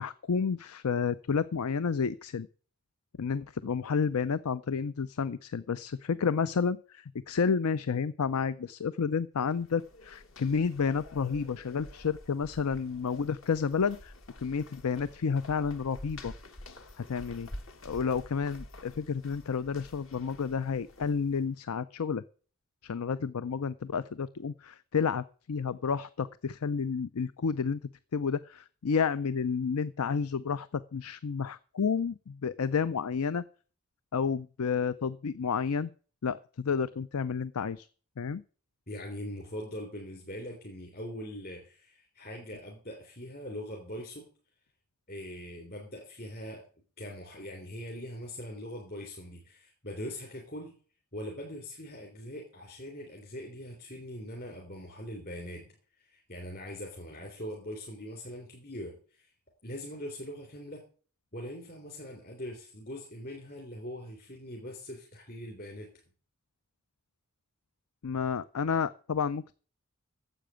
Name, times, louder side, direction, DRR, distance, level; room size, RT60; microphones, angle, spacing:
voice 1, 0.0-2.5 3.2-16.3 17.0-17.5 17.8-22.2 22.8-27.8 28.1-33.4 34.1-35.9 36.2-37.9 38.2-38.4 68.0-69.6, left 6 dB, 90° left, 16 dB, 0.5 m, -30 dB
sound 1, 9.4-21.5, left 1 dB, 60° left, 1.5 m, -49 dB
voice 2, 38.9-44.3 45.1-46.6 47.0-50.8 51.1-59.3 59.6-60.8 61.3-65.9, equal, 45° left, 0 dB, 3.5 m, -42 dB
10.0 x 7.8 x 9.1 m, 0.41 s
head